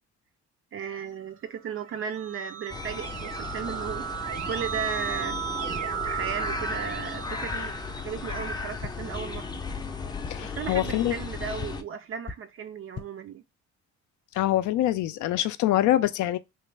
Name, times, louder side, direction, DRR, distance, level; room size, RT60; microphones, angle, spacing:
voice 1, 0.7-4.1 4.4-5.4 6.0-7.8 8.0-9.5 10.4-13.4, right 7 dB, 45° right, 0.4 m, -35 dB
Keyboard (musical), 1.7-8.4, right 8 dB, 75° right, 1.0 m, -35 dB
sound 1, 2.7-11.8, left 4 dB, 15° left, 0.4 m, -35 dB
sound 2, 8.1-8.2 8.8-8.9 9.5-9.6 10.2-10.3 10.9-11.0 11.6-11.7 12.2-12.3 12.8-13.0, left 5 dB, 40° left, 0.8 m, -37 dB
voice 2, 10.3-11.2 14.3-16.4, left 14 dB, 75° left, 0.4 m, -25 dB
3.2 x 2.2 x 3.2 m
cardioid pair, 90°, 30 cm